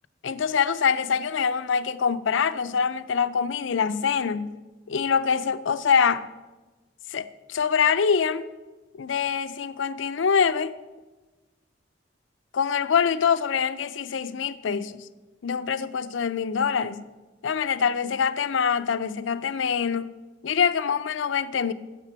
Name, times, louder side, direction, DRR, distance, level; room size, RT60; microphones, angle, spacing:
voice 1, 0.2-4.5 4.9-6.3 7.1-8.5 8.9-10.8 12.5-15.1 15.4-17.0 17.4-20.1 20.4-21.7, left 6 dB, 70° left, 0.5 m, -24 dB
12.0 x 7.4 x 4.6 m
head